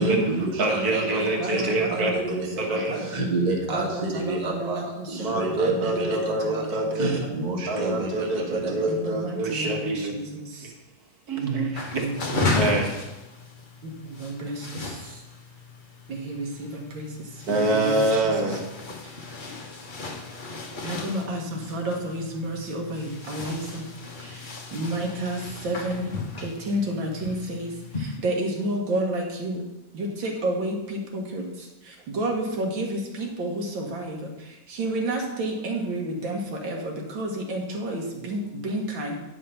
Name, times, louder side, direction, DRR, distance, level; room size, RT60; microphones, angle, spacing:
voice 1, 0.0-2.7 3.0-8.9, right 2 dB, 25° right, -1 dB, 1.4 m, -29 dB
voice 2, 0.6-2.1 2.6-3.2 5.2-7.2 7.7-10.1 10.6-10.8 11.3-12.0 12.6-13.0 17.5-18.7, right 2 dB, 55° right, 2 dB, 1.9 m, -26 dB
voice 3, 1.2-2.1 2.9-3.0 3.7-4.8 5.8-6.1 8.9-9.8 10.1-10.2 11.9-12.4 14.2-14.6 16.3-16.4 17.0-17.1 17.5-18.0 20.8-21.4 21.7-23.8 24.7-25.4 25.6-26.1 26.4-27.7 28.2-29.6 30.2-30.8 31.3-31.4 32.2-32.9 33.2-34.2 34.8-36.8 37.2-38.4 38.6-39.2, right 1 dB, 75° right, 0 dB, 2.1 m, -29 dB
sound 1, 11.7-28.2, left 3 dB, 30° left, 1.0 m, -35 dB
9.7 x 5.6 x 5.7 m, 1.0 s
omnidirectional pair, 2.1 m